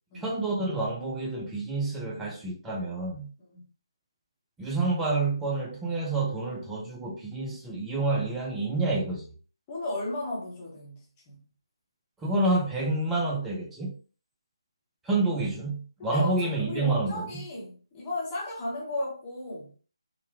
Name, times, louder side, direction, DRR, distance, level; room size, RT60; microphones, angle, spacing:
voice 1, 0.1-3.3 4.6-9.3 12.2-13.9 15.1-17.3, right 2 dB, 5° right, 0.4 m, -28 dB
voice 2, 9.7-11.0 11.3-11.4 16.0-19.7, left 2 dB, 15° left, 0.9 m, -34 dB
3.8 x 2.1 x 2.7 m
figure-of-eight pair, 155°, 3 cm